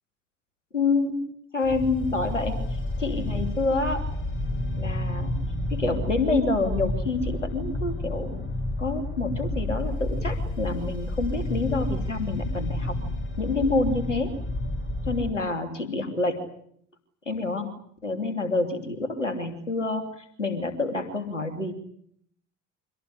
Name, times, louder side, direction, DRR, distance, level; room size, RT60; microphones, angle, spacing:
voice 1, 0.7-1.2 1.5-4.0 4.8-5.3 5.7-8.4 8.8-12.9 13.4-14.3 15.1-16.4 17.3-17.7 18.0-21.7, left 3 dB, 90° left, 7 dB, 3.0 m, -27 dB
sound 1, 1.6-15.3, left 1 dB, 35° left, 6.8 m, -30 dB
25.5 x 18.0 x 9.9 m, 0.67 s
figure-of-eight pair, 55°, 36 cm